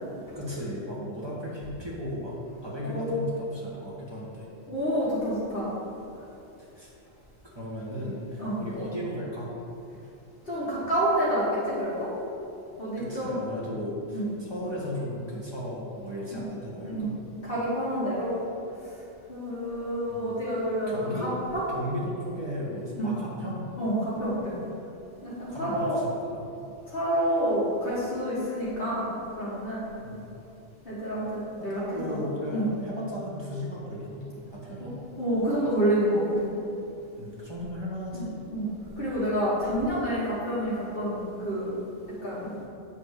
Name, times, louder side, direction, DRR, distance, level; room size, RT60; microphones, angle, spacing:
voice 1, 0.3-2.3 2.6-4.5 6.6-6.9 7.4-9.5 13.0-17.1 20.1-20.5 20.9-21.3 21.7-23.7 25.5-26.3 30.0-30.3 31.6-34.2 34.5-34.9 36.9-38.3, equal, 20° right, -6 dB, 1.6 m, -35 dB
voice 2, 4.7-5.7 8.4-8.6 10.4-12.1 12.8-13.4 14.1-14.2 16.3-16.4 16.9-17.1 17.4-18.3 19.3-21.6 23.0-23.1 23.8-24.6 25.2-26.0 26.9-29.1 29.4-29.9 30.9-31.8 32.1-32.2 32.5-32.7 34.8-34.9 35.2-36.5 38.1-38.7 38.9-41.7 42.2-42.5, equal, 50° left, -9 dB, 1.7 m, -28 dB
8.5 x 3.4 x 6.5 m, 2.8 s
omnidirectional pair, 1.2 m